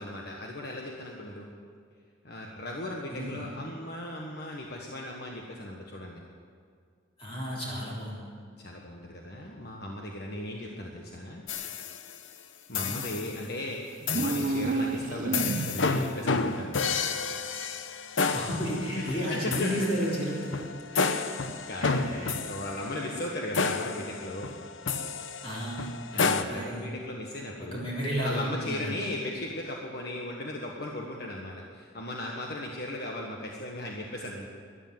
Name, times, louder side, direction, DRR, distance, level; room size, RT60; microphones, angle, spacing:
voice 1, 0.0-1.5 2.2-6.2 8.6-11.4 12.7-16.8 18.9-19.7 20.9-24.6 26.1-27.9 28.2-34.5, left 1 dB, 55° left, -1 dB, 1.4 m, -37 dB
voice 2, 3.1-3.5 7.2-8.2 12.7-13.1 18.2-20.6 21.8-22.3 25.4-26.9 27.6-28.9, equal, 30° left, -5 dB, 3.6 m, -33 dB
sound 1, 11.5-12.3 12.7-13.4 14.1-14.6 15.3-26.4, left 4 dB, 85° left, 0.9 m, -31 dB
sound 2, 14.0-16.0, right 3 dB, 45° right, 0.4 m, -30 dB
13.0 x 11.5 x 9.4 m, 2.1 s
head